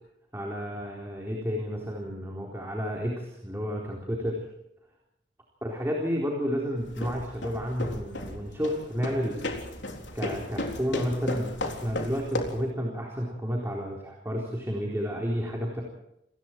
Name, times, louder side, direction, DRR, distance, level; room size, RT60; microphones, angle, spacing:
voice 1, 0.3-4.4 5.6-9.4 10.1-15.8, equal, 15° right, -1 dB, 4.0 m, -31 dB
sound 1, 6.8-12.7, left 1 dB, 75° left, 3.7 m, -35 dB
29.0 x 20.0 x 4.6 m, 0.82 s
head